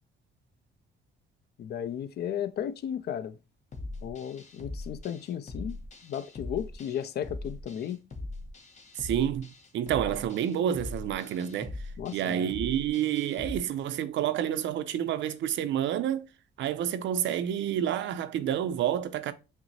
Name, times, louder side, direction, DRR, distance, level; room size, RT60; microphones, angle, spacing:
voice 1, 1.6-3.4 4.0-8.0 12.0-12.5, left 9 dB, 55° left, 0.4 m, -35 dB
sound 1, 3.7-13.6, left 2 dB, 35° left, 0.8 m, -41 dB
voice 2, 9.0-9.5 9.7-11.7 12.1-16.2 16.6-19.3, right 10 dB, 70° right, 0.4 m, -29 dB
5.9 x 2.0 x 2.7 m
cardioid pair, 90°, 20 cm